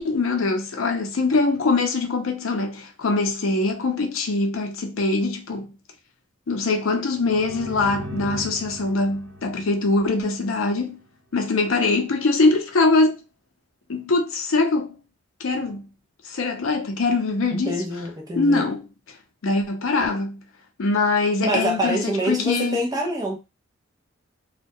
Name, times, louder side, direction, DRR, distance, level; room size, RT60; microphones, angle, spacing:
voice 1, 0.0-5.7 6.5-11.0 11.3-13.2 13.9-15.0 15.4-15.9 16.2-17.8 18.3-18.8 19.4-20.4 20.8-22.8, left 3 dB, 85° left, 0.6 m, -22 dB
sound 1, 7.1-10.8, equal, 65° right, 1.1 m, -38 dB
voice 2, 17.5-18.6 21.4-23.4, equal, 20° right, 0.5 m, -26 dB
2.2 x 2.1 x 2.6 m
head